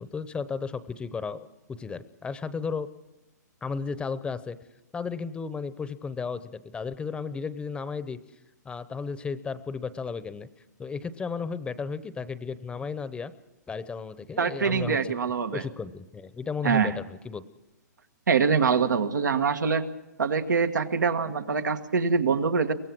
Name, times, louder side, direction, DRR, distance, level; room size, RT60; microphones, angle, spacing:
voice 1, 0.0-2.9 3.6-4.6 4.9-8.2 8.6-10.5 10.8-13.3 13.7-15.1 15.5-17.4, left 5 dB, 10° left, 14 dB, 0.8 m, -34 dB
voice 2, 14.4-15.6 16.6-17.0 18.3-19.8 20.2-22.7, right 5 dB, 90° right, 6 dB, 1.7 m, -24 dB
23.5 x 17.5 x 6.2 m, 1.0 s
hypercardioid pair, 135°, 10 cm